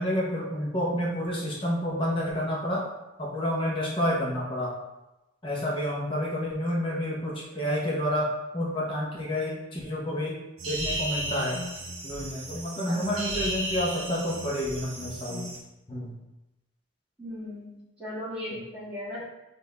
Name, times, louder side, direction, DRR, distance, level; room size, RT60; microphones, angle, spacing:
voice 1, 0.0-2.8 3.2-4.8 5.4-8.3 8.5-10.4 10.7-11.6 12.0-15.5 15.9-16.1 18.5-18.6, equal, 25° left, -4 dB, 0.8 m, -29 dB
sound 1, 10.6-15.6, right 1 dB, 65° right, 1.3 m, -34 dB
voice 2, 17.2-19.2, left 1 dB, 5° right, -12 dB, 1.6 m, -37 dB
6.0 x 2.6 x 3.4 m, 0.97 s
head